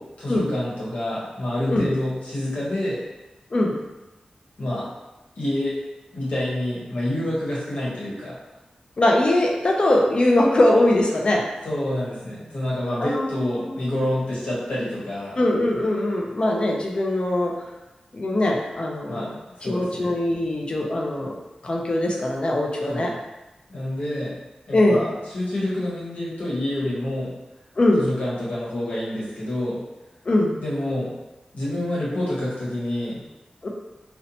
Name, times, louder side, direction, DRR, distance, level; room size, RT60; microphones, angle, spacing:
voice 1, 0.0-3.0 4.6-4.9 5.4-5.7 6.1-8.3 11.6-15.4 19.1-19.3 19.6-20.1 22.8-23.1 23.7-24.4 24.7-25.1 25.3-27.3 28.0-29.8 30.6-31.1 31.5-33.2, left 1 dB, 85° left, -8 dB, 1.0 m, -27 dB
voice 2, 9.0-11.4 13.0-13.7 15.4-17.5 18.1-19.3 19.6-21.4 21.6-23.1 24.7-25.0 27.8-28.1 30.3-30.6 33.6-33.7, left 1 dB, 45° left, 0 dB, 0.4 m, -21 dB
2.7 x 2.1 x 2.7 m, 1.0 s
wide cardioid pair, 90°, 2 cm